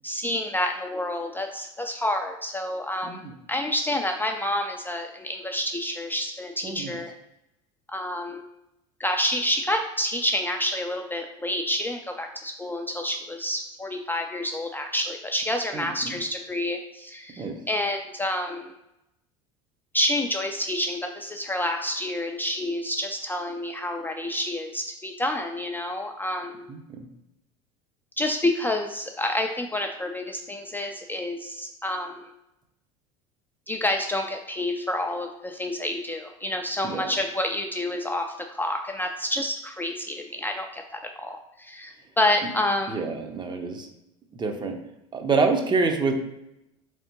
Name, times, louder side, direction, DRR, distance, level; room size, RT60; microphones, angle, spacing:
voice 1, 0.0-3.2 3.5-7.1 7.9-8.4 9.0-18.7 19.9-26.6 28.2-32.2 33.7-43.1, left 1 dB, 10° left, 3 dB, 0.4 m, -28 dB
voice 2, 3.0-3.3 6.6-7.0 15.7-16.1 17.4-17.6 26.7-27.1 36.8-37.1 42.9-43.9 44.3-44.8 45.1-46.1, right 4 dB, 25° right, 4 dB, 0.7 m, -27 dB
3.5 x 3.4 x 2.9 m, 0.86 s
hypercardioid pair, 80°, 17 cm